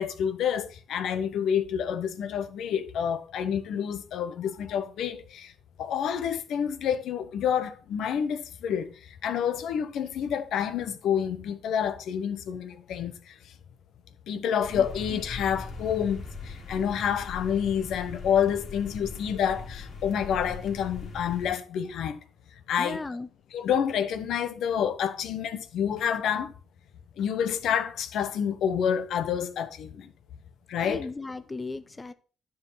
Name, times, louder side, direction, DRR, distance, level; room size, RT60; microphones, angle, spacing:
voice 1, 0.0-5.5 5.8-8.9 9.2-13.3 14.3-22.2 22.7-23.0 23.5-26.5 27.2-30.1 30.7-31.1, left 8 dB, 75° left, 1.0 m, -28 dB
sound 1, 14.6-21.5, left 3 dB, 60° left, 3.2 m, -40 dB
voice 2, 22.8-23.3 30.8-32.1, left 3 dB, 20° left, 0.6 m, -36 dB
10.5 x 4.9 x 5.7 m
cardioid pair, 90°, 0 cm